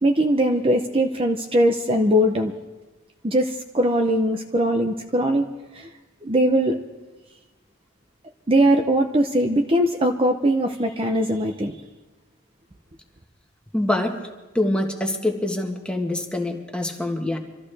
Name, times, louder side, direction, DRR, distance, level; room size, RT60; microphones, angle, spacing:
voice 1, 0.0-2.5 3.2-5.5 5.7-5.9 6.2-6.8 8.5-11.8, right 1 dB, 30° right, 4 dB, 0.7 m, -20 dB
voice 2, 13.7-14.2 14.5-17.4, left 1 dB, 5° left, 2 dB, 1.4 m, -25 dB
25.5 x 14.0 x 3.4 m, 1.2 s
head